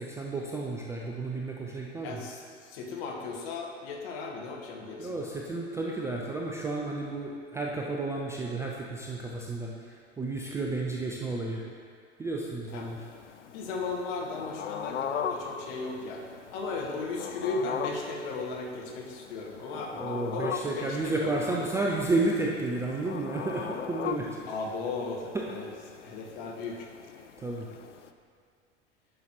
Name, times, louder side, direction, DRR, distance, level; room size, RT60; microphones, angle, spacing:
voice 1, 0.0-2.2 5.0-11.6 12.2-13.0 19.9-24.5 25.3-25.6 27.4-27.7, right 2 dB, 10° right, -2 dB, 0.4 m, -32 dB
voice 2, 2.0-5.3 12.7-12.9 13.5-16.2 16.5-21.6 24.5-25.7 26.0-26.9, left 3 dB, 50° left, -1 dB, 1.3 m, -36 dB
sound 1, 12.7-28.1, left 7 dB, 80° left, 0.5 m, -40 dB
11.0 x 5.6 x 3.0 m, 2.1 s
figure-of-eight pair, 85°, 35 cm